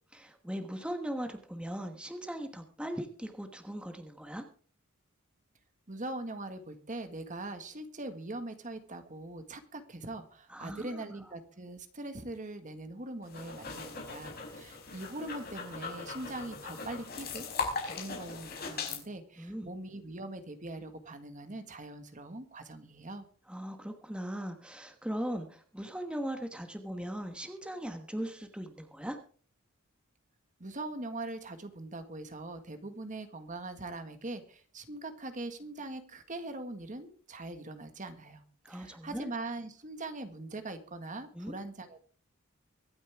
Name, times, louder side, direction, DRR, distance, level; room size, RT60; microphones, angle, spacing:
voice 1, 0.1-4.5 10.5-11.0 19.4-19.7 23.5-29.2 38.6-39.3 41.3-41.5, equal, 5° right, 5 dB, 1.2 m, -39 dB
voice 2, 5.9-17.5 17.8-23.2 30.6-42.0, right 2 dB, 35° right, 8 dB, 1.7 m, -42 dB
sound 1, 13.2-19.0, left 4 dB, 45° left, 4.8 m, -39 dB
24.0 x 9.5 x 3.5 m, 0.42 s
head